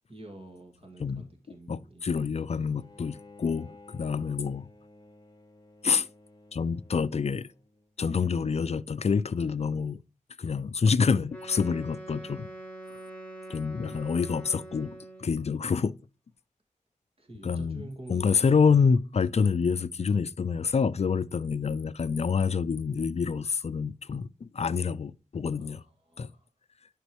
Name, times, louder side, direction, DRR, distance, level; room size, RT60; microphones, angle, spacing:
voice 1, 0.1-2.2 2.6-2.8 9.3-9.7 12.2-12.5 17.2-18.5 18.8-18.9 25.5-26.5, right 1 dB, 45° right, 2.1 m, -48 dB
voice 2, 1.7-4.7 5.8-6.1 6.5-7.5 8.0-10.0 10.4-12.5 13.5-15.9 17.4-25.8 26.2-26.3, left 5 dB, 50° left, 0.4 m, -27 dB
Bowed string instrument, 2.7-7.9, left 2 dB, 30° left, 1.0 m, -54 dB
Wind instrument woodwind instrument, 11.3-15.4, right 1 dB, 10° left, 2.0 m, -44 dB
11.5 x 5.3 x 3.1 m
wide cardioid pair, 75°, 14 cm